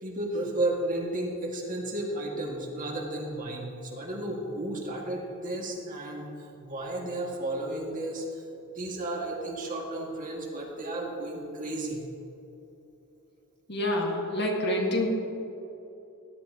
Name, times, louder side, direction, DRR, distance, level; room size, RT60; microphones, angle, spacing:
voice 1, 0.0-6.3 6.6-8.2 8.6-12.0, right 1 dB, 40° right, -1 dB, 1.9 m, -33 dB
voice 2, 13.7-15.1, left 1 dB, 50° left, 0 dB, 1.9 m, -27 dB
17.0 x 11.5 x 2.9 m, 2.9 s
head